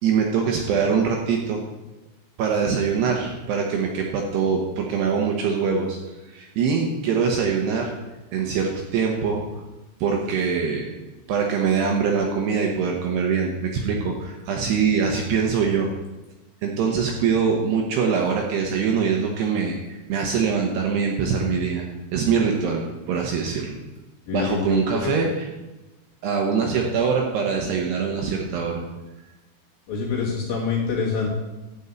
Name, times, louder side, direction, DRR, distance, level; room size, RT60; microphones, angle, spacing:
voice 1, 0.0-1.6 2.4-6.0 6.3-7.9 8.3-9.4 10.0-10.9 11.3-15.9 16.6-21.9 22.1-23.8 24.3-25.5 26.2-28.8, right 6 dB, 75° right, 1 dB, 2.7 m, -23 dB
voice 2, 24.3-25.1 29.9-31.3, left 5 dB, 50° left, -4 dB, 3.7 m, -26 dB
12.0 x 5.4 x 8.4 m, 1.1 s
omnidirectional pair, 5.7 m